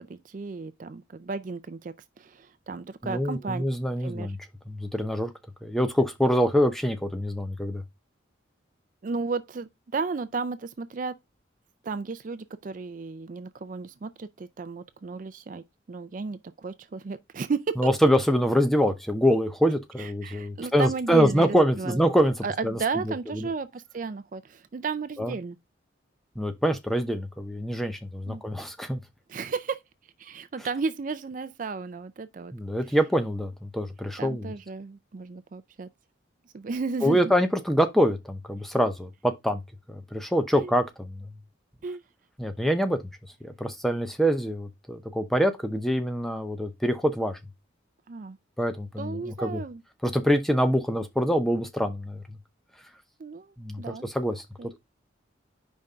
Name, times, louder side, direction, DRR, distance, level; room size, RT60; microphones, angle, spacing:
voice 1, 0.0-3.6 4.0-4.3 9.0-11.2 11.8-17.6 20.0-22.0 22.4-25.6 28.3-28.4 29.3-29.8 30.2-32.5 32.9-33.0 34.2-35.9 36.5-37.3 40.6-40.7 41.8-42.0 48.1-48.4 49.0-49.8 53.2-54.1 54.6-54.8, right 4 dB, 40° right, 0.4 m, -34 dB
voice 2, 3.0-4.4 4.7-5.3 5.6-7.8 17.8-22.3 22.6-22.8 23.0-23.5 25.2-25.3 26.4-29.0 32.5-34.5 37.0-39.6 39.9-41.3 42.4-43.0 43.4-47.4 48.6-49.6 50.0-52.4 53.6-54.4, equal, ahead, 0.7 m, -25 dB
5.2 x 3.5 x 5.4 m
head